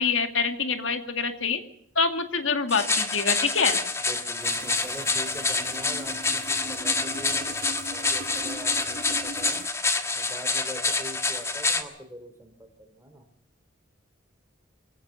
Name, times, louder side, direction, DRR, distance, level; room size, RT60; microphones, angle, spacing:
voice 1, 0.0-1.6 2.0-3.8, left 5 dB, 85° left, 7 dB, 2.3 m, -25 dB
sound 1, 2.7-11.8, left 3 dB, 15° left, 1.4 m, -27 dB
voice 2, 4.1-9.6 10.1-13.2, equal, 15° right, 5 dB, 3.2 m, -43 dB
sound 2, 4.4-9.7, right 2 dB, 55° right, 1.4 m, -40 dB
23.5 x 16.5 x 7.1 m, 0.70 s
head